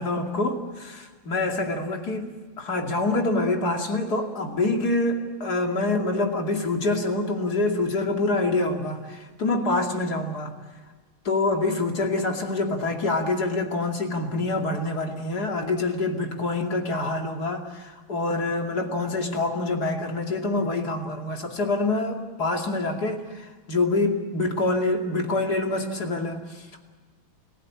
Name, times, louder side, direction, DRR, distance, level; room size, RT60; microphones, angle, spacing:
voice 1, 0.0-10.5 11.2-26.9, left 2 dB, 45° left, 4 dB, 3.0 m, -26 dB
29.0 x 17.0 x 8.6 m, 1.4 s
omnidirectional pair, 2.3 m